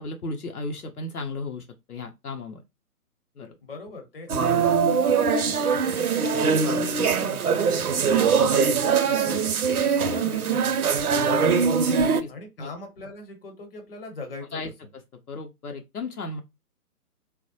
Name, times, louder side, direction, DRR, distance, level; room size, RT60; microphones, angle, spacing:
voice 1, 0.0-2.6 3.4-3.6 4.3-4.5 7.2-7.4 11.2-11.5 12.0-12.3 12.6-12.7 14.5-14.7 15.3-16.4, left 2 dB, 70° left, 0.6 m, -35 dB
voice 2, 3.6-6.8 7.7-10.9 12.3-14.6, left 2 dB, 35° left, 0.8 m, -41 dB
sound 1, 4.3-12.2, right 6 dB, 70° right, 0.5 m, -22 dB
3.1 x 2.0 x 2.7 m
figure-of-eight pair, 135°, 47 cm